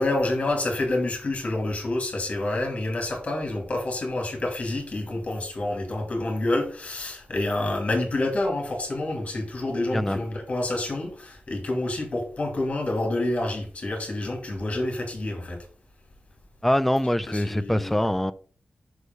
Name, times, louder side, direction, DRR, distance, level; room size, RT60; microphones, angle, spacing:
voice 1, 0.0-15.6 17.3-17.9, left 2 dB, 45° left, 3.0 m, -28 dB
voice 2, 16.6-18.3, left 1 dB, 5° left, 0.5 m, -23 dB
6.5 x 4.9 x 5.5 m
wide cardioid pair, 140°, 3 cm